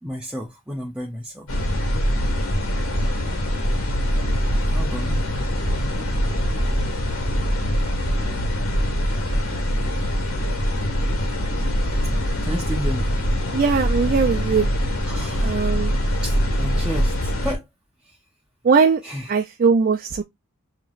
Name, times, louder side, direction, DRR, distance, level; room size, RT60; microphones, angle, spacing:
voice 1, 0.0-1.5 4.7-5.3 12.4-13.2 15.0-15.7 16.2-17.7 18.0-18.2 19.0-19.3, equal, 5° right, 0.7 m, -32 dB
sound 1, 1.5-17.5, equal, 70° left, 1.7 m, -23 dB
voice 2, 13.5-14.7 15.4-15.9 18.6-19.0 19.3-20.2, right 5 dB, 40° right, 0.4 m, -19 dB
5.9 x 2.9 x 2.4 m
head